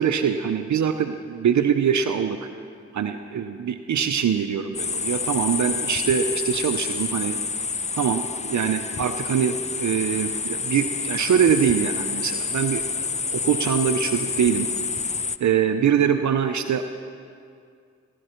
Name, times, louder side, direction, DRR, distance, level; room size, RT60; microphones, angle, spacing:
voice 1, 0.0-2.4 2.9-7.4 8.0-12.8 13.3-14.7 15.4-16.8, right 8 dB, 70° right, 7 dB, 0.7 m, -23 dB
sound 1, 4.7-15.4, left 5 dB, 25° left, 0.4 m, -28 dB
17.5 x 12.0 x 4.4 m, 2.3 s
cardioid pair, 45°, 30 cm